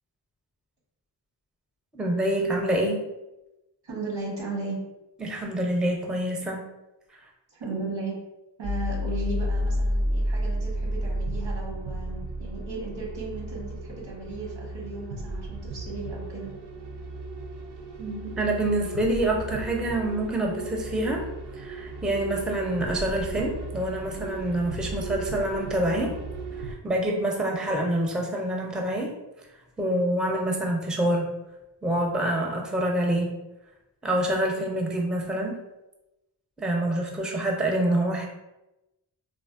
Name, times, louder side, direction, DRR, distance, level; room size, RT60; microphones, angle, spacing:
voice 1, 1.9-3.0 5.2-6.7 18.0-21.2 21.5-26.1 26.6-29.1 29.8-31.3 31.8-33.3 34.0-35.5 36.6-38.3, right 1 dB, ahead, 0 dB, 0.4 m, -26 dB
voice 2, 3.8-4.8 7.5-8.2 8.6-16.5, right 3 dB, 90° right, -2 dB, 1.0 m, -35 dB
sound 1, 8.6-26.7, right 1 dB, 65° right, 0.5 m, -33 dB
3.4 x 2.0 x 2.3 m, 0.97 s
wide cardioid pair, 65°, 45 cm